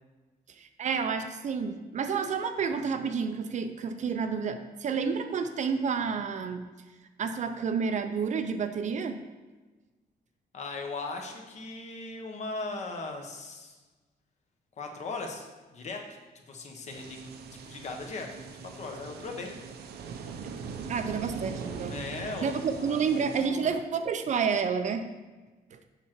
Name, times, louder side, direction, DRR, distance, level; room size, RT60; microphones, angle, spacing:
voice 1, 0.6-6.6 7.2-9.2 20.9-21.9 22.4-25.0 25.7-25.8, right 6 dB, 45° right, 8 dB, 0.5 m, -30 dB
voice 2, 10.5-13.8 14.8-15.5 15.7-16.0 16.5-19.6 21.8-23.7, left 3 dB, 45° left, 2 dB, 1.1 m, -39 dB
sound 1, 16.9-23.5, right 5 dB, 85° right, 0.7 m, -41 dB
7.2 x 5.9 x 4.5 m, 1.2 s
cardioid pair, 150°, 16 cm